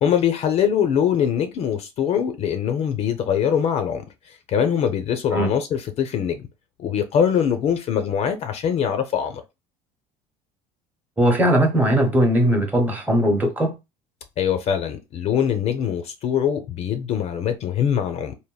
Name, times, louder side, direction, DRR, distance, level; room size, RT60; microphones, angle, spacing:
voice 1, 0.0-6.5 6.8-9.4 14.4-18.3, left 8 dB, 45° left, 0.4 m, -23 dB
voice 2, 11.2-13.7, right 1 dB, 10° right, 0.8 m, -19 dB
3.4 x 2.1 x 2.2 m
cardioid pair, 130°, 15 cm